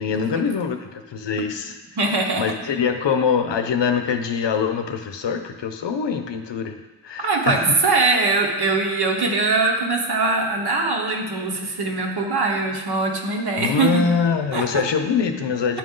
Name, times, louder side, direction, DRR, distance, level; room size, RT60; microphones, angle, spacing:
voice 1, 0.0-1.8 2.4-7.6 13.6-15.8, left 6 dB, 70° left, 7 dB, 0.7 m, -24 dB
voice 2, 2.0-2.4 7.2-14.0 14.5-14.9, right 3 dB, 60° right, 1 dB, 1.1 m, -22 dB
10.5 x 3.9 x 3.7 m, 1.2 s
wide cardioid pair, 90°, 45 cm